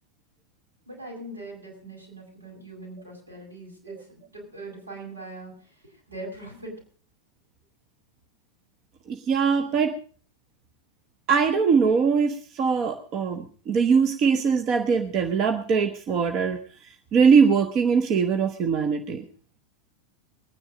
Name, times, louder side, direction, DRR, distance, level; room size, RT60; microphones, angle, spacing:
voice 1, 0.9-6.8, right 2 dB, 80° right, 0 dB, 6.9 m, -41 dB
voice 2, 9.1-10.0 11.3-16.6 17.1-19.2, right 6 dB, 35° right, 8 dB, 1.0 m, -22 dB
21.0 x 10.0 x 5.1 m, 0.42 s
figure-of-eight pair, 90°, 0 cm